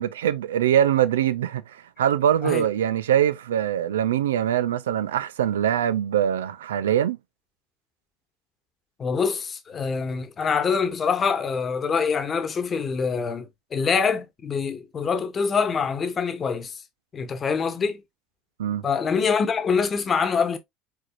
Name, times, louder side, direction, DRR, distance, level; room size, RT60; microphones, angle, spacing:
voice 1, 0.0-1.6 2.0-7.2 18.6-18.8, right 10 dB, 85° right, 0.5 m, -23 dB
voice 2, 9.0-16.8 17.1-18.0 18.8-20.6, left 5 dB, 35° left, 1.2 m, -25 dB
4.8 x 4.4 x 2.4 m
hypercardioid pair, 70°, 0 cm